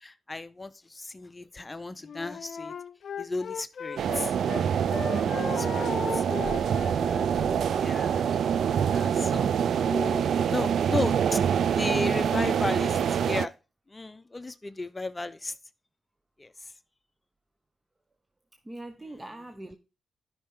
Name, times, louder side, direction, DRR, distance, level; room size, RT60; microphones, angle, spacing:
voice 1, 0.0-2.7 3.2-4.4 5.3-6.2 7.8-8.4 8.9-11.4 11.8-13.5 13.9-15.5 16.4-16.7, left 2 dB, 25° left, 0.7 m, -34 dB
Wind instrument woodwind instrument, 2.0-4.6 4.9-7.7, left 6 dB, 65° left, 0.6 m, -37 dB
sound 1, 4.0-13.5, right 8 dB, 75° right, 0.4 m, -25 dB
voice 2, 5.2-6.1 18.6-19.8, right 1 dB, 20° right, 0.9 m, -42 dB
12.0 x 5.6 x 3.6 m
cardioid pair, 60°, 0 cm